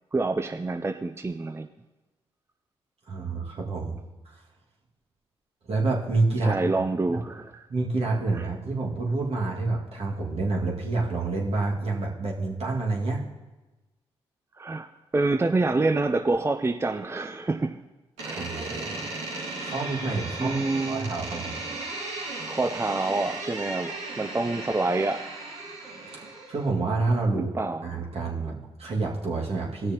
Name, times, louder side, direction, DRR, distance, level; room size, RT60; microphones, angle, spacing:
voice 1, 0.1-1.7 6.4-7.6 8.3-8.4 14.6-14.9 15.1-17.8 18.2-18.5 20.4-21.1 22.4-25.3 27.3-27.8, right 3 dB, 20° right, 6 dB, 0.5 m, -27 dB
voice 2, 3.1-4.0 4.3-4.4 5.7-7.2 7.7-13.2 18.2-19.0 19.6-21.6 26.5-27.5 27.8-29.9, right 3 dB, 60° right, -2 dB, 2.1 m, -28 dB
Door, 18.2-26.7, right 2 dB, 90° right, 1.9 m, -36 dB
17.0 x 6.3 x 2.9 m, 1.1 s
supercardioid pair, 45°, 12 cm